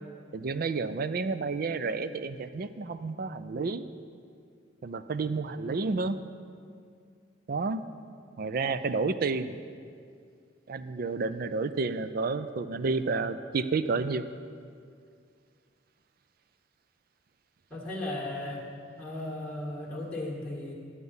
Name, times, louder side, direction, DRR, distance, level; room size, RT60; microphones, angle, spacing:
voice 1, 0.3-3.8 4.8-6.2 7.5-7.8 8.4-9.6 10.7-14.2, right 4 dB, 50° right, 12 dB, 0.4 m, -30 dB
voice 2, 17.7-18.7 19.0-20.7, left 1 dB, 5° left, -5 dB, 1.6 m, -36 dB
11.5 x 8.1 x 5.5 m, 2.3 s
head